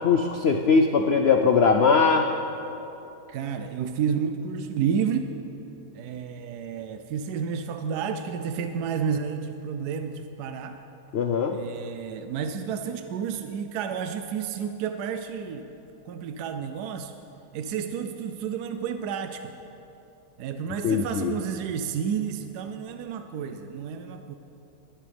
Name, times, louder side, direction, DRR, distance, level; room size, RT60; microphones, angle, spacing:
voice 1, 0.0-2.3 11.1-11.6 20.8-21.3, left 5 dB, 70° left, 4 dB, 0.6 m, -20 dB
voice 2, 3.3-5.3 5.9-10.8 11.5-15.7 16.1-17.1 17.5-19.5 20.4-24.3, right 7 dB, 80° right, 7 dB, 1.2 m, -31 dB
21.5 x 11.0 x 3.4 m, 3.0 s
omnidirectional pair, 1.7 m